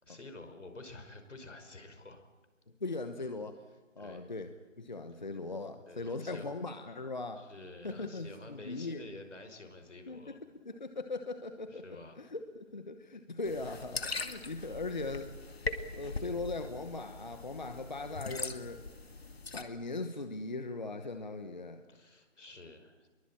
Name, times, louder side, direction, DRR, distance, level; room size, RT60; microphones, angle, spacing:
voice 1, 0.0-2.2 4.0-4.3 5.9-6.5 7.4-10.4 11.7-12.1 21.9-23.1, left 2 dB, 75° left, 6 dB, 5.4 m, -50 dB
voice 2, 2.8-3.6 4.0-4.5 4.8-7.5 7.8-9.0 10.1-10.4 10.6-15.6 15.9-18.8 19.5-21.8, left 3 dB, 35° left, 8 dB, 1.1 m, -39 dB
sound 1, 13.4-19.6, left 3 dB, 55° left, 2.1 m, -41 dB
23.0 x 22.5 x 8.7 m, 1.2 s
figure-of-eight pair, 175°, 37 cm